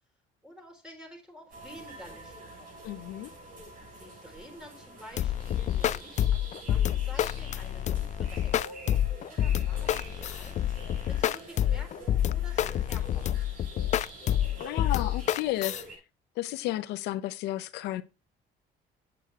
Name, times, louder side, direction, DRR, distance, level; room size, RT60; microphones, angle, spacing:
voice 1, 0.4-2.8 3.9-8.8 9.3-10.7 11.1-13.3, equal, 5° right, 4.0 m, -50 dB
sound 1, 1.5-16.0, right 2 dB, 55° right, 5.9 m, -47 dB
voice 2, 2.8-3.3 14.6-15.7 16.4-18.0, left 15 dB, 85° left, 0.6 m, -32 dB
sound 2, 5.2-15.8, left 11 dB, 45° left, 0.4 m, -28 dB
8.5 x 7.9 x 3.6 m
cardioid pair, 110°, 17 cm